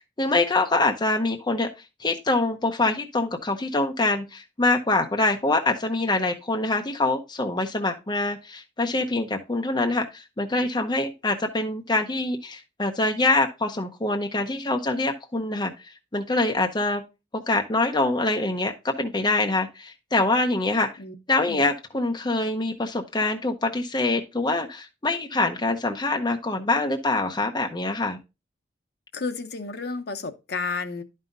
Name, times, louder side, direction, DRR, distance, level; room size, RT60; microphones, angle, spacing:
voice 1, 0.2-1.7 2.0-15.7 16.1-17.0 17.5-20.9 21.3-28.2, left 2 dB, 25° left, 0.7 m, -25 dB
voice 2, 29.1-31.0, left 4 dB, 60° left, 0.9 m, -31 dB
11.0 x 5.5 x 2.6 m
head